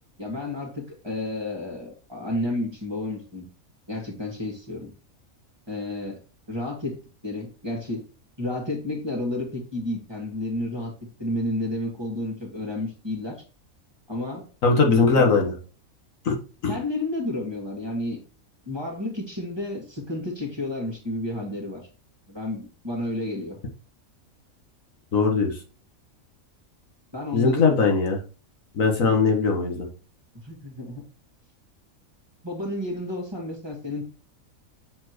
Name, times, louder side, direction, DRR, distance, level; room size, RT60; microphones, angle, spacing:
voice 1, 0.2-3.5 3.9-4.9 5.7-6.2 6.5-8.0 8.4-10.9 11.2-13.4 14.1-14.5 15.2-15.4 16.7-18.2 18.7-21.8 22.3-23.6 27.1-27.7 29.0-29.2 30.4-31.0 32.4-34.0, left 1 dB, 20° right, 0 dB, 2.0 m, -31 dB
voice 2, 14.6-15.5 16.2-16.4 16.6-16.8 25.1-25.6 27.3-28.2 28.7-29.9, left 4 dB, 70° left, 1 dB, 1.7 m, -20 dB
7.3 x 4.3 x 3.0 m, 0.35 s
omnidirectional pair, 1.5 m